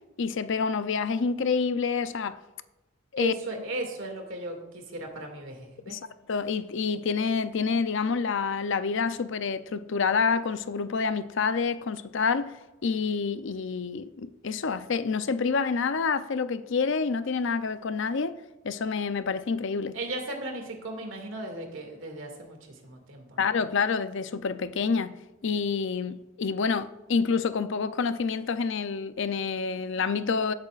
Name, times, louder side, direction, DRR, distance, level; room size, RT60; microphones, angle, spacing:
voice 1, 0.2-2.4 3.1-3.4 5.9-12.5 12.8-18.3 18.6-20.0 23.4-25.2 25.4-30.5, left 5 dB, 65° left, 0.5 m, -28 dB
voice 2, 3.2-6.0 19.9-22.6 22.8-23.4, right 2 dB, 70° right, 2.2 m, -36 dB
17.0 x 8.6 x 2.5 m
head